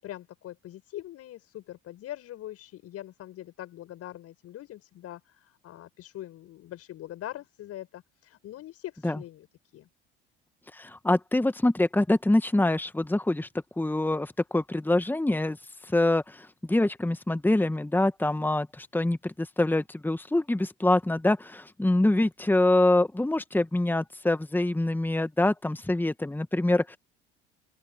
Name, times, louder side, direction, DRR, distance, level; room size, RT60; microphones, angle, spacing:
voice 1, 0.0-9.5 9.7-9.9, left 13 dB, 55° left, 7.7 m, -42 dB
voice 2, 10.7-13.5 13.8-15.6 15.8-27.0, left 2 dB, 5° left, 1.9 m, -25 dB
open air
hypercardioid pair, 65°, 30 cm